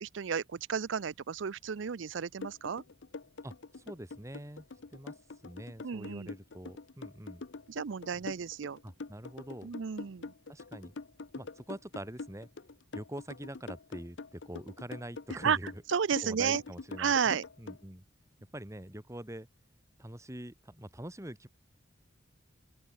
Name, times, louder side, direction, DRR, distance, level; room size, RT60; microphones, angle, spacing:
voice 1, 0.0-2.8 5.8-6.3 7.7-8.8 9.6-10.3 15.4-15.6 15.9-16.6 17.0-17.4, right 7 dB, 65° right, 0.5 m, -32 dB
sound 1, 2.4-17.8, left 3 dB, 60° left, 0.7 m, -44 dB
voice 2, 3.4-4.7 4.9-5.1 5.4-7.4 8.2-8.3 8.8-9.7 10.5-10.9 11.3-12.5 12.9-15.8 16.2-18.0 18.5-19.5 20.0-21.5, right 1 dB, 15° right, 2.4 m, -44 dB
open air
head